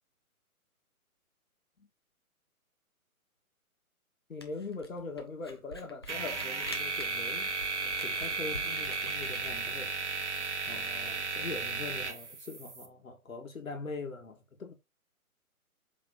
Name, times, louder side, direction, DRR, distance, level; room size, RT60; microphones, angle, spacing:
voice 1, 4.3-7.5 7.8-9.9 10.7-14.7, left 3 dB, 65° left, 2.0 m, -42 dB
Camera, 4.4-9.6, left 1 dB, 20° left, 0.5 m, -47 dB
sound 1, 6.1-12.9, right 4 dB, 55° right, 1.4 m, -35 dB
7.7 x 3.7 x 4.0 m
figure-of-eight pair, 135°, 43 cm